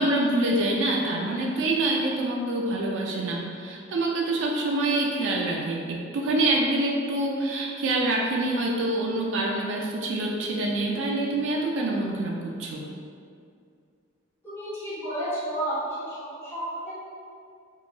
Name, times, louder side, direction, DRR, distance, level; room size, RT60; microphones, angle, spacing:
voice 1, 0.0-12.8, right 2 dB, 65° right, -1 dB, 0.3 m, -26 dB
voice 2, 14.4-17.0, right 1 dB, 10° left, -14 dB, 1.0 m, -32 dB
2.9 x 2.2 x 2.5 m, 2.3 s
head